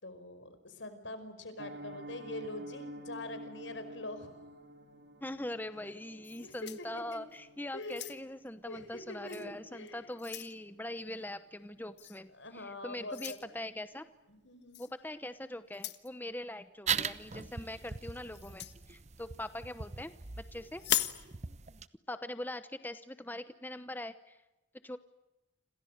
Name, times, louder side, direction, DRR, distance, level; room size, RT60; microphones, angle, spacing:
voice 1, 0.0-4.3 6.2-7.3 7.7-8.2 8.7-10.2 12.3-13.5 14.3-14.8, left 2 dB, 80° left, 10 dB, 5.2 m, -44 dB
Piano, 1.6-12.5 12.7-13.0 13.3-13.4 13.8-14.0 14.3-14.4, equal, 70° right, 3.0 m, -51 dB
voice 2, 5.2-14.1 14.8-20.1 20.5-20.8 22.1-24.4 24.8-25.0, left 1 dB, 10° left, 11 dB, 0.9 m, -42 dB
sound 1, 6.2-7.4 7.8-8.5 9.3-9.5 9.9-10.6 12.0-12.2 13.1-13.4 14.7-14.9 15.7-16.1 18.3-18.8 20.8-21.2, left 12 dB, 60° left, 1.4 m, -37 dB
sound 2, 16.9-21.9, right 7 dB, 35° right, 0.9 m, -40 dB
29.5 x 27.0 x 6.7 m, 0.96 s
head